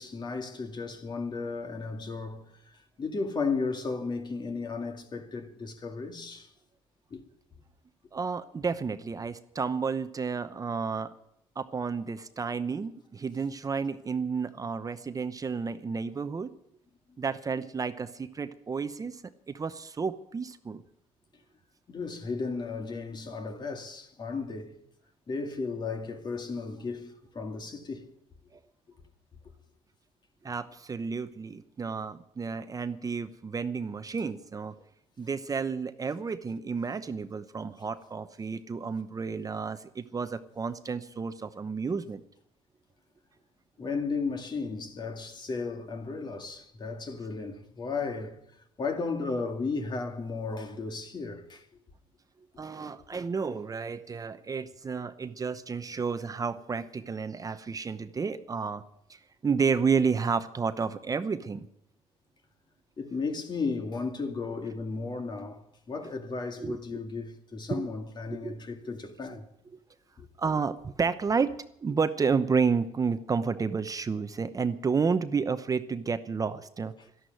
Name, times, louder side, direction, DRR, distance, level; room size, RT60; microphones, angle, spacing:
voice 1, 0.0-6.5 7.1-7.2 21.9-24.7 25.3-28.1 43.8-48.4 48.8-51.7 63.0-69.5 70.2-70.3, left 4 dB, 40° left, 2.3 m, -34 dB
voice 2, 8.1-11.1 11.6-16.5 17.2-19.2 19.5-20.8 28.5-28.6 30.4-34.7 35.2-42.2 52.6-58.8 59.1-61.7 66.6-67.0 67.7-67.9 68.3-68.5 70.4-71.5 71.8-76.9, right 5 dB, 30° right, 0.9 m, -31 dB
13.0 x 11.5 x 9.2 m
cardioid pair, 90°, 12 cm